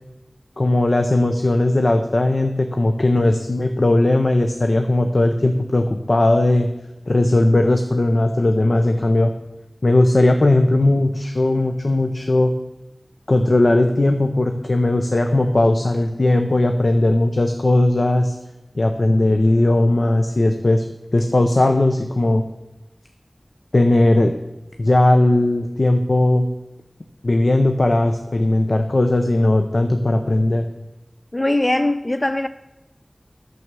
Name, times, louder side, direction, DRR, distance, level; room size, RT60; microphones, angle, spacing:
voice 1, 0.6-6.7 7.1-9.3 9.8-12.5 13.3-18.4 18.7-20.8 21.1-22.4 23.7-24.3 24.8-26.5 27.2-30.7, left 1 dB, 65° left, 0.7 m, -17 dB
voice 2, 31.3-32.5, left 1 dB, 35° left, 0.4 m, -20 dB
9.4 x 7.0 x 6.1 m
wide cardioid pair, 40°, 0 cm